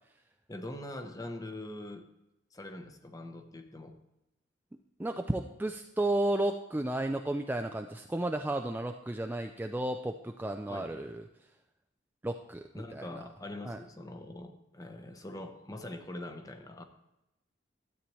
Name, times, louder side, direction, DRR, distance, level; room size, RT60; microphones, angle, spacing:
voice 1, 0.5-2.1 2.5-4.0 10.7-11.0 12.7-16.8, left 1 dB, 20° left, 6 dB, 0.8 m, -43 dB
voice 2, 5.0-11.2 12.2-13.1 13.6-13.8, right 1 dB, 10° right, 4 dB, 0.3 m, -33 dB
13.0 x 8.4 x 3.1 m, 0.92 s
head